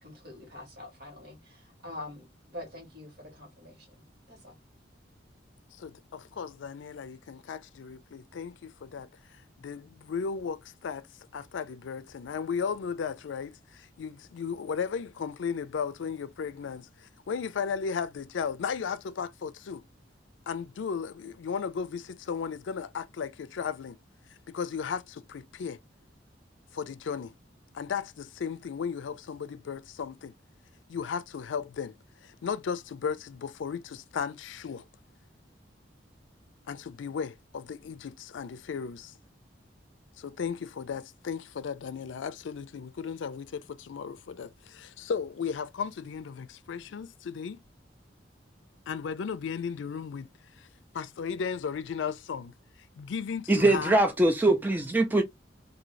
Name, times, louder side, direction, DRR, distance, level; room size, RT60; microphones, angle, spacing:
voice 1, 0.0-4.6, left 1 dB, 60° right, 1.4 m, -45 dB
voice 2, 5.7-9.1 9.6-11.1 11.3-19.8 20.5-24.0 24.5-25.8 26.7-27.4 27.7-30.3 30.9-31.9 32.2-34.8 36.7-39.1 40.2-47.6 48.9-50.3 50.6-50.7 50.9-52.5 53.0-53.9, left 6 dB, 80° left, 0.4 m, -35 dB
voice 3, 53.5-55.2, right 2 dB, 10° right, 0.3 m, -22 dB
2.7 x 2.6 x 3.0 m
head